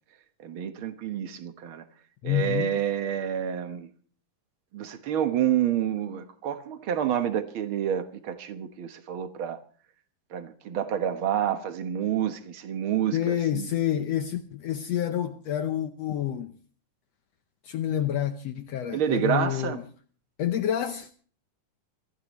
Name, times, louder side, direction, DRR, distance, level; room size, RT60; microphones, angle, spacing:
voice 1, 0.4-1.8 2.2-3.9 4.7-9.6 10.3-13.7 18.9-19.8, right 10 dB, 65° right, 1.3 m, -28 dB
voice 2, 2.2-2.7 13.1-16.6 17.6-19.8 20.4-21.1, left 11 dB, 70° left, 1.6 m, -28 dB
24.5 x 15.0 x 3.1 m
omnidirectional pair, 3.9 m